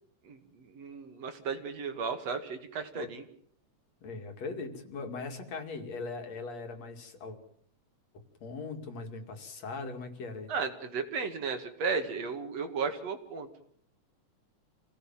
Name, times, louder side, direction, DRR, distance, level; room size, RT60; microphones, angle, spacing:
voice 1, 0.2-3.2 10.5-13.5, right 5 dB, 60° right, 7 dB, 3.0 m, -34 dB
voice 2, 4.0-7.4 8.4-10.5, left 4 dB, 60° left, 5 dB, 3.7 m, -40 dB
26.5 x 17.5 x 7.4 m, 0.65 s
omnidirectional pair, 3.4 m